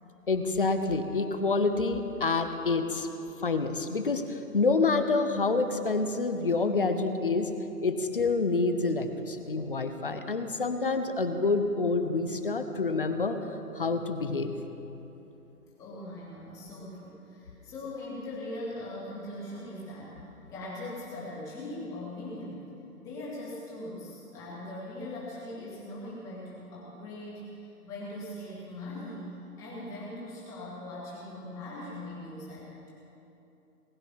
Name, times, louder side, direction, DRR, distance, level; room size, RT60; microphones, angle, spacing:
voice 1, 0.3-3.1 3.4-7.5 7.8-13.4 13.7-14.5, left 3 dB, 35° left, 8 dB, 0.7 m, -27 dB
voice 2, 15.8-20.2 20.5-22.6 23.0-32.9, left 1 dB, 5° left, -8 dB, 1.9 m, -40 dB
19.5 x 9.9 x 5.6 m, 3.0 s
hypercardioid pair, 170°, 46 cm